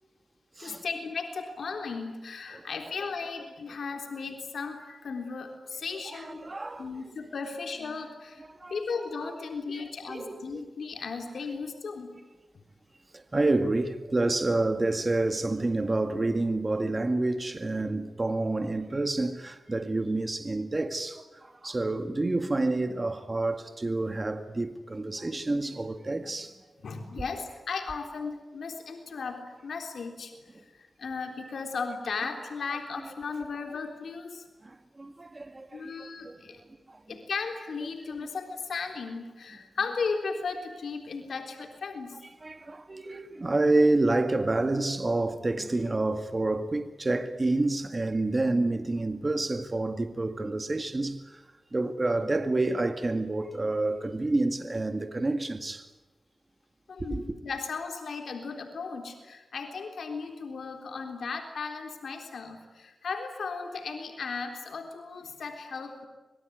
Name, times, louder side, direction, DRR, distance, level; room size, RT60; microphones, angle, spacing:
voice 1, 0.6-6.4 6.8-12.1 24.9-25.7 26.8-30.4 30.6-34.4 35.7-36.6 37.1-42.2 56.9-66.1, left 4 dB, 75° left, 3.6 m, -36 dB
voice 2, 6.1-6.9 8.4-8.8 9.7-10.6 13.1-26.6 34.6-36.4 36.9-37.0 42.4-51.4 51.7-55.9 57.1-57.2, right 2 dB, 30° right, 2.0 m, -28 dB
26.0 x 23.0 x 9.5 m
cardioid pair, 65°, 0 cm